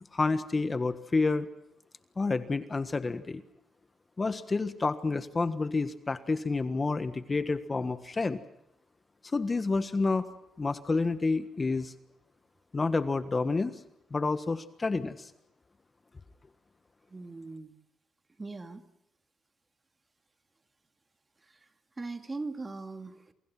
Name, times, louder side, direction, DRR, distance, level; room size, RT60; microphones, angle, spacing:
voice 1, 0.1-1.5 2.2-3.4 4.2-8.4 9.3-10.3 10.6-11.9 12.7-13.7 14.1-15.3, left 3 dB, 25° left, 12 dB, 1.5 m, -29 dB
voice 2, 17.1-17.8 18.4-18.8 21.4-21.7 22.0-23.3, right 3 dB, 25° right, 8 dB, 2.3 m, -40 dB
28.5 x 24.5 x 6.0 m, 0.78 s
cardioid pair, 90°, 0 cm